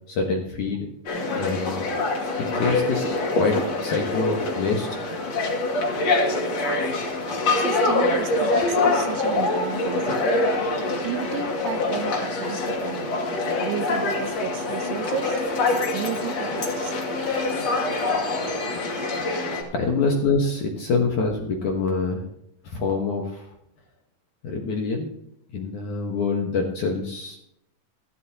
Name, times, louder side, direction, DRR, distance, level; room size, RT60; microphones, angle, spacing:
voice 1, 0.1-0.9 1.4-1.8 2.4-3.1 3.4-3.6 3.8-5.0 19.1-19.3 19.7-22.2 22.6-23.5 24.4-25.1 25.5-27.4, left 4 dB, 60° left, 0 dB, 2.1 m, -25 dB
sound 1, 1.1-19.6, left 2 dB, 45° left, 2.7 m, -25 dB
voice 2, 7.3-10.2 11.0-13.2 13.6-15.4 15.9-16.9 19.0-19.2, right 10 dB, 80° right, 8 dB, 2.5 m, -33 dB
16.0 x 12.5 x 2.9 m, 0.78 s
omnidirectional pair, 5.2 m